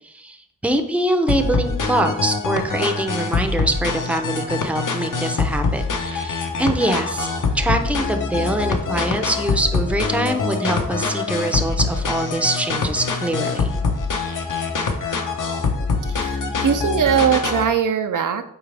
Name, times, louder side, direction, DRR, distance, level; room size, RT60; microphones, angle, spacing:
voice 1, 0.0-0.4 0.6-7.3 7.5-13.8, right 1 dB, 5° right, 6 dB, 0.6 m, -23 dB
sound 1, 1.3-17.7, left 4 dB, 55° left, 1.0 m, -24 dB
voice 2, 16.1-18.4, right 7 dB, 60° right, 8 dB, 0.5 m, -20 dB
8.7 x 4.4 x 3.4 m, 0.74 s
wide cardioid pair, 115°, 37 cm